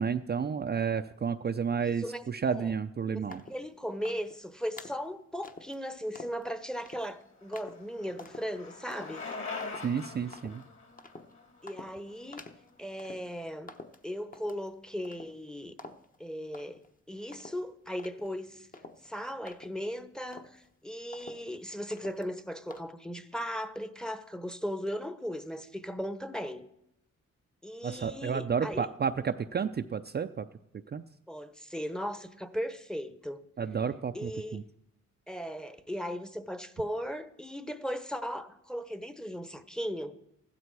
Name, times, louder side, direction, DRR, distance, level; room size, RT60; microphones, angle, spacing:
voice 1, 0.0-3.4 9.8-10.6 27.8-30.5 30.9-31.0 33.6-34.6, right 6 dB, 35° right, 0.5 m, -31 dB
voice 2, 1.8-2.7 3.1-9.2 11.6-12.4 12.8-13.7 14.0-15.8 16.2-16.8 17.1-18.7 19.0-26.6 27.6-28.9 31.3-33.4 34.1-34.6 35.3-40.1, equal, 5° left, 0.9 m, -37 dB
sound 1, 3.3-3.7 4.0-4.4 4.8-5.1 5.4-5.8 6.2-6.5 6.8-7.1 7.5-7.8 8.2-8.5 8.9-9.2 9.6-10.0 10.3-10.7 11.0-11.3 11.7-12.0 12.3-12.7 13.0-13.4 13.7-14.7 15.0-15.5 15.8-16.2 16.5-17.0 17.3-20.0 20.3-20.7 21.1-21.6 21.9-22.3 22.7-22.8, left 2 dB, 30° left, 1.0 m, -48 dB
Bicycle, 6.9-12.9, left 4 dB, 45° left, 2.6 m, -43 dB
15.0 x 12.5 x 4.7 m
cardioid pair, 85°, 29 cm